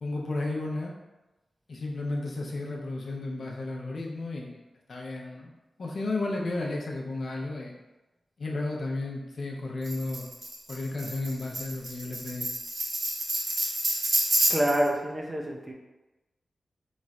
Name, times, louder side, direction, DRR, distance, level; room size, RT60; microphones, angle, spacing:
voice 1, 0.0-0.9 1.7-4.6 4.9-5.5 5.8-7.8 8.4-10.2 10.7-12.5, left 2 dB, 60° left, -2 dB, 0.7 m, -33 dB
Tambourine, 9.8-14.9, right 1 dB, 50° right, 0.9 m, -29 dB
voice 2, 14.5-15.7, right 1 dB, 20° right, 0 dB, 0.5 m, -27 dB
3.1 x 2.4 x 4.1 m, 1.1 s
wide cardioid pair, 115°, 0 cm